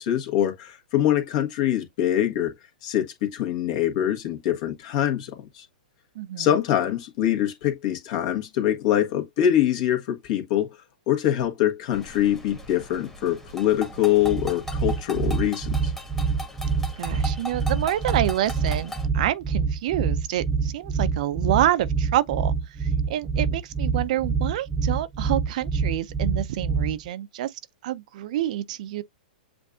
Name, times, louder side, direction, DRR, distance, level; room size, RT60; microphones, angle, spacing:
voice 1, 0.0-2.5 2.8-5.6 6.4-10.7 11.1-15.9, left 11 dB, 50° left, 1.5 m, -24 dB
voice 2, 6.2-6.6 17.0-29.0, right 13 dB, 60° right, 0.5 m, -27 dB
sound 1, 11.9-19.1, left 1 dB, 5° left, 1.4 m, -39 dB
sound 2, 14.2-27.1, right 5 dB, 15° right, 0.6 m, -26 dB
7.7 x 2.6 x 2.4 m
hypercardioid pair, 120°, 5 cm